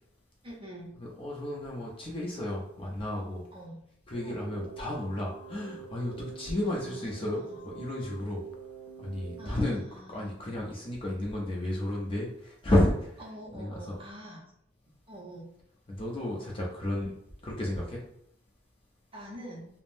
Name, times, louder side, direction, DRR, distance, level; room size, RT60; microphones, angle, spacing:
voice 1, 0.4-0.9 3.5-3.8 4.2-4.4 6.6-7.6 9.4-10.3 13.2-14.5 15.1-15.5 19.1-19.7, equal, 25° right, -3 dB, 0.7 m, -45 dB
voice 2, 1.2-3.4 4.1-8.4 9.0-9.8 10.1-13.1 13.5-14.0 15.9-17.1 17.4-18.0, left 1 dB, 25° left, -2 dB, 0.5 m, -32 dB
Keyboard (musical), 4.1-9.5, right 6 dB, 85° left, 0.4 m, -45 dB
3.4 x 2.0 x 2.5 m, 0.75 s
head